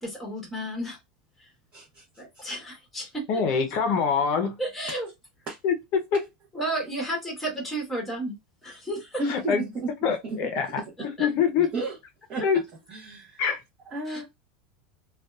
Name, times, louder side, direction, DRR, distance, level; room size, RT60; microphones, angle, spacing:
voice 1, 0.0-1.0 2.2-3.2 4.6-5.1 6.5-8.4 8.6-9.2 11.2-11.3 14.1-14.2, right 1 dB, ahead, 1.0 m, -32 dB
voice 2, 1.7-2.0 2.3-2.4 5.5-5.6 9.2-9.9 10.2-10.4 10.8-10.9 11.6-12.0 12.3-12.5 12.9-13.4 13.9-14.2, right 2 dB, 25° right, 0.8 m, -32 dB
voice 3, 3.3-4.6 5.6-6.2 9.3-9.6 10.0-11.7 12.4-12.6 13.4-13.6, left 6 dB, 45° left, 0.6 m, -25 dB
2.6 x 2.2 x 2.3 m
supercardioid pair, 160°, 4 cm